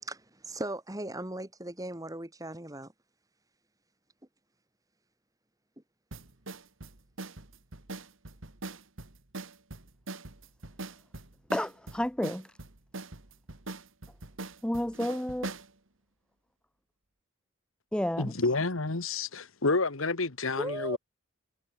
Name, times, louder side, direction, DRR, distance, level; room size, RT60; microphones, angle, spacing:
voice 1, 0.0-2.9 20.6-21.0, right 1 dB, 15° right, 2.5 m, -38 dB
sound 1, 6.1-15.7, right 2 dB, 70° right, 2.4 m, -42 dB
voice 2, 11.5-12.6 14.6-15.5 17.9-18.3, left 1 dB, 5° left, 0.6 m, -31 dB
voice 3, 18.2-21.0, left 3 dB, 80° left, 1.6 m, -29 dB
head